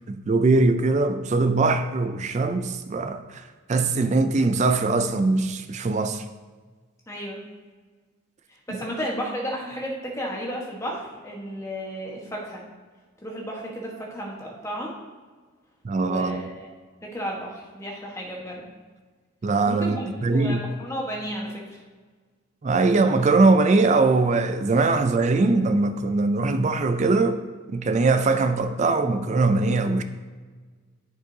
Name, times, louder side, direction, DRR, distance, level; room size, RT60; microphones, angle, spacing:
voice 1, 0.1-3.4 3.7-6.2 8.7-8.8 15.8-16.4 19.4-20.7 22.6-27.4 27.7-30.0, right 3 dB, 35° right, 0.3 m, -21 dB
voice 2, 7.1-7.4 8.5-12.6 13.2-14.9 16.0-16.7 17.0-18.6 19.7-21.8, equal, 15° left, 1.2 m, -33 dB
9.1 x 7.2 x 2.7 m
head